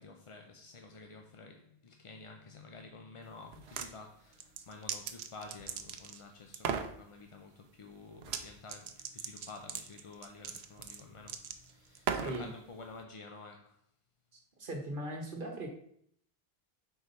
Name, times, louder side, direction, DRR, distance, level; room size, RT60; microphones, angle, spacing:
voice 1, 0.0-13.8, left 3 dB, 45° left, 0.4 m, -51 dB
sound 1, 3.5-3.9 4.4-6.2 6.5-6.9 8.2-8.4 8.7-12.4, right 7 dB, 80° right, 0.9 m, -38 dB
voice 2, 14.6-15.7, right 1 dB, 55° right, 1.3 m, -39 dB
4.7 x 4.0 x 5.2 m
omnidirectional pair, 1.1 m